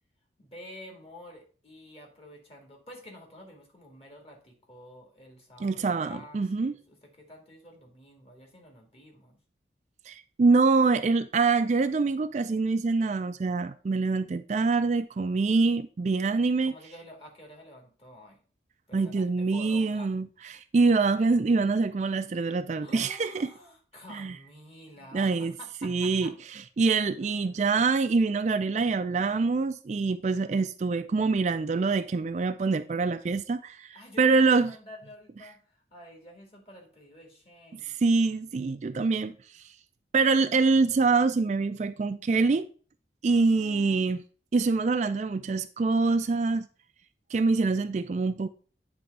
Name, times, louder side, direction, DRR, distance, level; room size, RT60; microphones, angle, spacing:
voice 1, 0.4-9.4 16.7-18.4 18.9-20.1 22.8-26.3 27.2-27.4 33.9-38.0 43.3-44.1, left 1 dB, 35° left, 2.1 m, -49 dB
voice 2, 5.6-6.7 10.1-16.7 18.9-23.5 24.1-24.3 25.1-25.5 25.8-26.3 26.8-34.7 37.8-39.6 40.1-42.7 43.2-44.2 44.5-46.7 47.3-48.5, right 4 dB, 40° right, 0.3 m, -25 dB
9.2 x 3.4 x 5.3 m
head